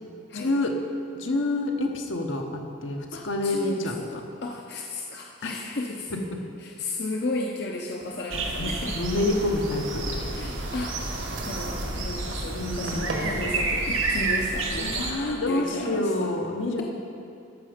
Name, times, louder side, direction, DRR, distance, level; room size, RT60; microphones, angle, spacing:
voice 1, 0.3-0.8 1.1-2.5 2.8-4.2 5.4-5.5 8.6-10.3 12.5-13.3 14.8-16.8, left 2 dB, 75° left, 3 dB, 1.0 m, -28 dB
voice 2, 3.1-6.1 6.6-9.0 10.4-16.3, left 2 dB, 55° left, 0 dB, 0.6 m, -34 dB
sound 1, 8.0-13.3, right 2 dB, 65° right, 1.5 m, -40 dB
sound 2, 8.3-15.1, right 2 dB, 80° right, 1.3 m, -30 dB
13.0 x 6.3 x 5.1 m, 2.6 s
head